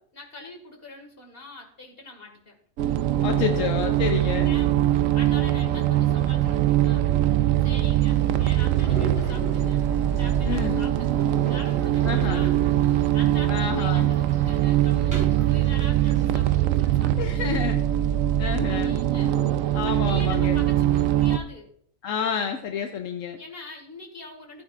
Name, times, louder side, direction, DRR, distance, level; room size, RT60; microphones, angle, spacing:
voice 1, 0.1-2.6 4.2-7.1 7.6-12.6 13.1-17.7 18.3-21.7 23.4-24.6, left 2 dB, 45° left, 2 dB, 2.3 m, -43 dB
sound 1, 2.8-21.4, right 12 dB, 85° right, 1.0 m, -22 dB
voice 2, 3.2-4.5 10.4-10.8 12.0-12.5 13.5-14.1 17.2-17.8 18.4-18.9 19.7-20.6 22.0-23.4, left 7 dB, 80° left, 6 dB, 1.1 m, -29 dB
sound 2, 8.1-16.5, right 2 dB, 25° right, 5.1 m, -40 dB
15.5 x 8.8 x 2.5 m, 0.64 s
omnidirectional pair, 1.3 m